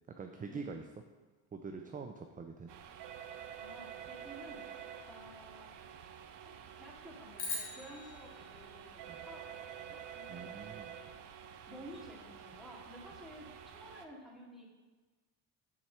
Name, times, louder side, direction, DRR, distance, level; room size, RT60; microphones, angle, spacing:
voice 1, 0.2-0.9 1.5-2.7 9.1-9.2 10.3-10.9, right 4 dB, 20° right, 5 dB, 0.4 m, -44 dB
sound 1, 2.7-14.1, right 8 dB, 60° right, 0.7 m, -49 dB
voice 2, 3.5-5.7 6.4-6.5 6.8-10.5 11.7-14.7, equal, ahead, -4 dB, 2.3 m, -53 dB
sound 2, 7.4-9.8, left 3 dB, 60° left, 2.0 m, -43 dB
6.4 x 4.2 x 5.8 m, 1.3 s
supercardioid pair, 70°, 48 cm